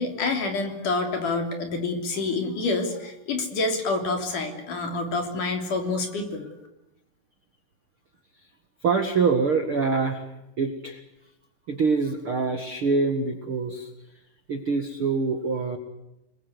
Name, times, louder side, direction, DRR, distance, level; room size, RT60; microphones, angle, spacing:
voice 1, 0.0-6.5, left 3 dB, 50° left, 5 dB, 4.5 m, -27 dB
voice 2, 8.8-10.2 10.6-11.0 11.7-13.9 14.5-15.8, right 4 dB, 45° right, 5 dB, 1.8 m, -25 dB
28.0 x 21.0 x 8.2 m, 0.90 s
omnidirectional pair, 4.8 m